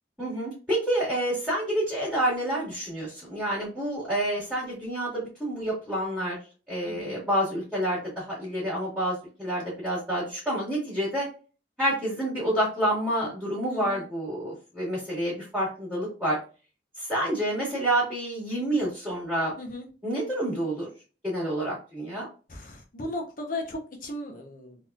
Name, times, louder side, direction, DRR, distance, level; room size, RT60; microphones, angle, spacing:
voice 1, 0.2-6.4 6.7-11.3 11.8-16.4 17.0-19.5 20.0-20.9 21.2-22.3, right 1 dB, 5° right, -8 dB, 1.8 m, -28 dB
voice 2, 6.8-7.2 13.7-14.0 19.6-19.9 22.5-24.8, left 1 dB, 50° left, 2 dB, 0.9 m, -36 dB
4.0 x 3.1 x 2.4 m, 0.35 s
head